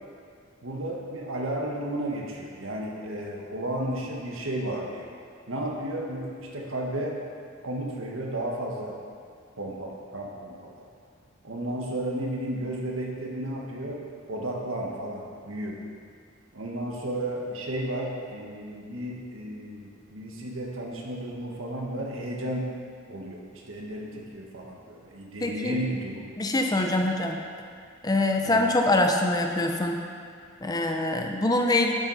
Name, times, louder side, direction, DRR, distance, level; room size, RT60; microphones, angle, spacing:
voice 1, 0.6-5.1 5.5-7.2 7.6-9.0 9.6-10.7 11.4-15.8 16.5-22.7 23.1-26.3 28.4-28.6, right 1 dB, 80° right, -1 dB, 1.6 m, -33 dB
voice 2, 25.4-25.7 26.4-27.4 28.0-30.0 30.6-31.9, left 2 dB, 20° left, 3 dB, 0.6 m, -24 dB
11.0 x 7.6 x 4.2 m, 2.2 s
head